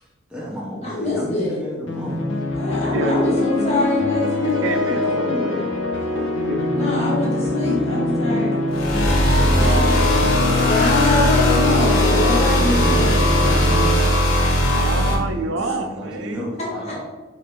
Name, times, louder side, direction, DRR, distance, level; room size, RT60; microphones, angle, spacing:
voice 1, 0.3-2.3 15.0-15.2 15.6-17.0, equal, 5° right, -5 dB, 0.6 m, -32 dB
voice 2, 0.8-1.6 2.5-5.5 6.7-8.6 10.7-13.1 16.6-16.9, left 1 dB, 35° left, -5 dB, 1.3 m, -24 dB
sound 1, 1.9-13.9, left 3 dB, 65° left, 0.7 m, -23 dB
voice 3, 2.9-3.4 4.4-5.6 6.1-7.0 9.4-10.1 14.6-16.5, right 2 dB, 75° right, 6 dB, 0.4 m, -28 dB
sound 2, 8.7-15.1, equal, 85° left, 1.0 m, -18 dB
Brass instrument, 11.1-15.3, right 1 dB, 40° right, 0.7 m, -36 dB
4.6 x 2.6 x 3.4 m, 1.2 s
head